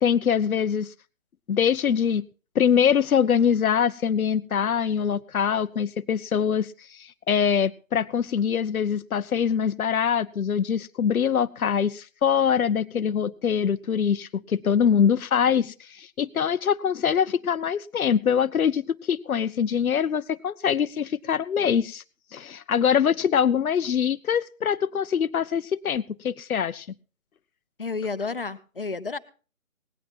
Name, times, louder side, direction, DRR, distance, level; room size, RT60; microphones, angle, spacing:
voice 1, 0.0-0.9 1.5-2.3 2.6-22.0 22.3-26.9, left 7 dB, 90° left, 14 dB, 0.6 m, -24 dB
voice 2, 27.8-29.2, left 4 dB, 40° left, 14 dB, 0.7 m, -31 dB
17.5 x 10.5 x 4.3 m, 0.37 s
figure-of-eight pair, 160°, 41 cm